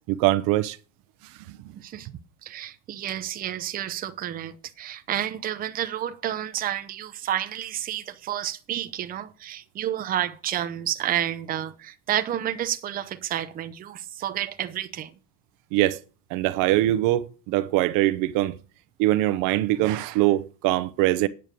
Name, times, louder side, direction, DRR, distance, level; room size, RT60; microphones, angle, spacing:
voice 1, 0.1-0.8 15.7-16.0 16.3-18.5 19.0-21.3, right 15 dB, 75° right, 0.8 m, -22 dB
voice 2, 2.4-15.1, right 11 dB, 25° right, 0.6 m, -30 dB
9.2 x 6.4 x 6.7 m
cardioid pair, 170°, 33 cm